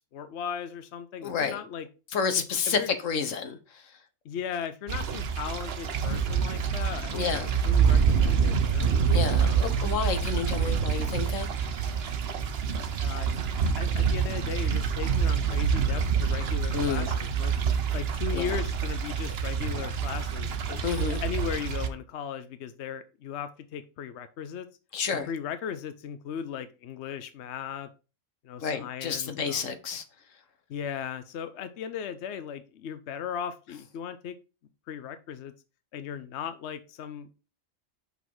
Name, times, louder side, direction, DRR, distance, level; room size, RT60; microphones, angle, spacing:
voice 1, 0.1-1.9 2.7-2.9 4.2-8.9 9.4-9.8 13.0-17.5 17.9-20.8 21.1-24.7 25.1-27.9 28.4-29.7 30.7-34.4 34.9-35.5 35.9-37.4, left 8 dB, 65° left, 0.9 m, -37 dB
voice 2, 1.2-1.6 2.1-3.9 7.1-7.5 9.1-11.5 11.7-11.9 16.7-17.1 18.3-18.6 20.8-21.2 24.9-25.3 28.6-30.0, left 6 dB, 85° left, 1.4 m, -30 dB
sound 1, 4.9-21.9, right 6 dB, 60° right, 1.0 m, -26 dB
6.1 x 5.4 x 4.6 m
omnidirectional pair, 1.3 m